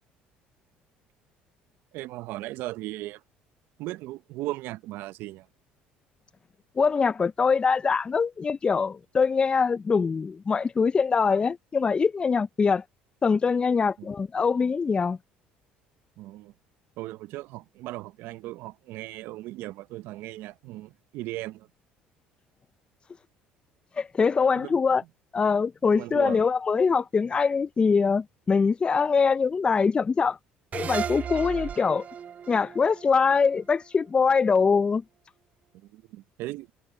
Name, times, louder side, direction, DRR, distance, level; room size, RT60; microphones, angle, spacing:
voice 1, 1.9-3.2 3.8-5.5 14.0-14.1 16.2-16.5 17.0-21.7 24.6-24.7 25.9-26.4 35.7-36.7, right 17 dB, 75° right, 0.7 m, -37 dB
voice 2, 6.8-12.8 13.2-15.2 24.0-25.0 25.3-30.4 30.7-32.1 32.5-35.0, left 5 dB, 25° left, 0.4 m, -23 dB
sound 1, 30.7-34.0, right 8 dB, 40° right, 0.4 m, -35 dB
supercardioid pair, 80°, 4 cm